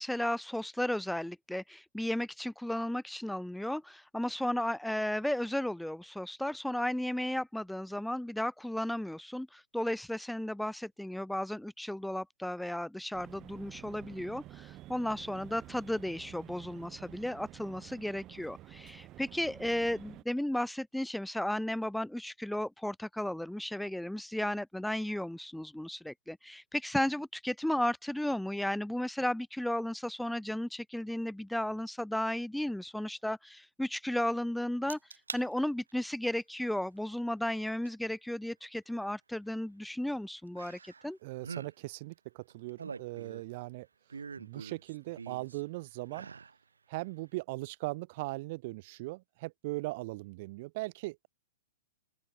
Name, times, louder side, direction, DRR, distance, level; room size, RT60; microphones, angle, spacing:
voice 1, 0.0-35.0 35.3-41.2, left 1 dB, ahead, 1.4 m, -34 dB
sound 1, 13.1-20.2, right 15 dB, 30° right, 1.5 m, -51 dB
sound 2, 34.9-35.5 35.9-36.3 37.9-38.0 40.6-41.1 41.4-41.7 42.5-43.6 44.1-45.6 46.1-46.6 47.0-47.1, right 5 dB, 85° right, 2.7 m, -44 dB
voice 2, 41.2-43.9 44.4-46.3 46.9-51.3, right 22 dB, 50° right, 2.3 m, -39 dB
open air
hypercardioid pair, 120°, 0 cm